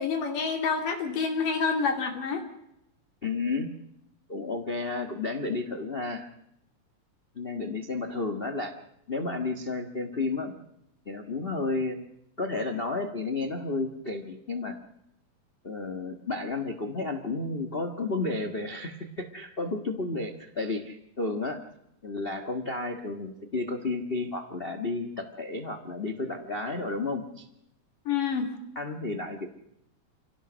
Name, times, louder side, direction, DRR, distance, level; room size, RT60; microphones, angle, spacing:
voice 1, 0.0-2.4 28.1-28.5, left 5 dB, 80° left, 5 dB, 4.3 m, -28 dB
voice 2, 3.2-3.7 4.3-6.3 7.3-8.8 9.1-10.5 11.0-12.0 12.4-14.8 15.6-21.6 22.0-27.5 28.7-29.5, left 3 dB, 45° left, 6 dB, 0.7 m, -32 dB
25.5 x 17.5 x 6.3 m, 0.80 s
omnidirectional pair, 3.7 m